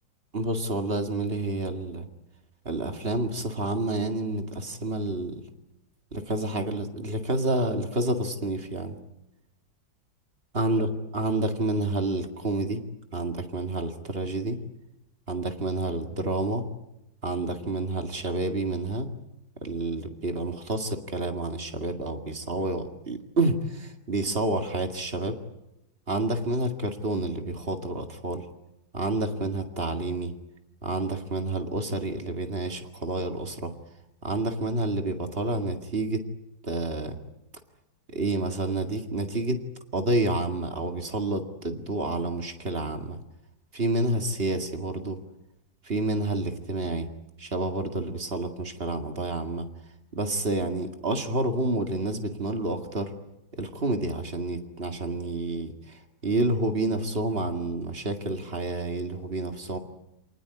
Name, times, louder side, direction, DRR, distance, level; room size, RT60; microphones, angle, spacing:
voice 1, 0.3-2.0 2.7-5.4 6.1-9.0 10.5-10.9 11.1-12.8 13.1-14.6 15.3-16.6 17.2-19.1 19.6-25.4 26.1-28.5 28.9-30.3 30.8-33.7 34.2-36.2 36.6-37.2 38.1-39.6 39.9-43.2 43.7-45.2 45.8-47.1 47.4-49.7 50.1-53.1 53.5-55.7 56.2-59.8, right 2 dB, 30° right, 6 dB, 2.2 m, -29 dB
27.5 x 19.0 x 9.8 m, 0.92 s
omnidirectional pair, 2.0 m